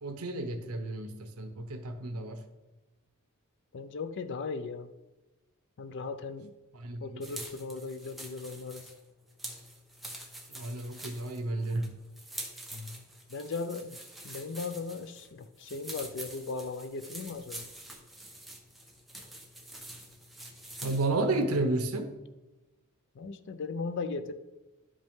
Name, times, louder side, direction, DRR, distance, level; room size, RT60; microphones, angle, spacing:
voice 1, 0.0-2.4 6.7-7.4 10.5-11.9 20.8-22.1, right 2 dB, 75° right, 7 dB, 0.7 m, -32 dB
voice 2, 3.7-4.9 5.8-6.5 7.0-8.9 12.7-13.0 13.3-14.0 14.2-17.7 23.2-24.3, left 4 dB, 55° left, 10 dB, 0.5 m, -37 dB
sound 1, 7.2-21.1, right 1 dB, ahead, 1.1 m, -46 dB
11.0 x 5.3 x 3.6 m, 1.1 s
head